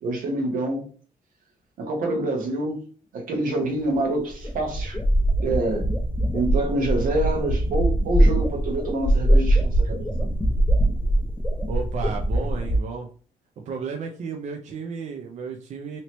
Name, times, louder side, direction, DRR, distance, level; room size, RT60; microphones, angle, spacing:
voice 1, 0.0-0.9 1.8-5.0 5.4-5.9 6.3-10.3, right 2 dB, 80° right, 0.9 m, -27 dB
sound 1, 3.9-4.0 4.3-12.8, right 1 dB, 10° left, 0.4 m, -22 dB
voice 2, 11.7-13.1 13.7-16.0, right 5 dB, 55° right, 0.5 m, -33 dB
2.9 x 2.8 x 3.0 m
cardioid pair, 100°, 14 cm